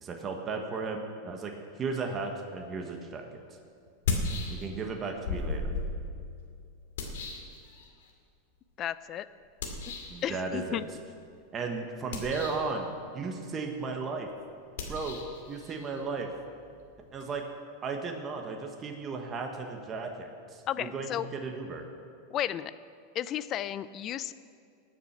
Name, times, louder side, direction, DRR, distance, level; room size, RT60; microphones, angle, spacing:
voice 1, 0.0-3.4 4.5-5.7 10.1-10.8 11.5-12.8 13.1-14.3 14.9-15.2 15.5-16.3 17.1-17.4 17.8-21.8, right 4 dB, 25° right, 2 dB, 1.4 m, -35 dB
sound 1, 2.9-3.0 3.9-4.9 5.2-8.1 9.6-10.2 12.0-12.8 14.7-17.3, left 3 dB, 80° left, 2.4 m, -36 dB
voice 2, 8.8-9.3 9.9-10.0 10.2-10.9 20.7-21.3 22.3-22.7 23.1-24.3, left 11 dB, 35° left, 16 dB, 0.5 m, -33 dB
20.0 x 7.4 x 5.9 m, 2.4 s
supercardioid pair, 135°, 0 cm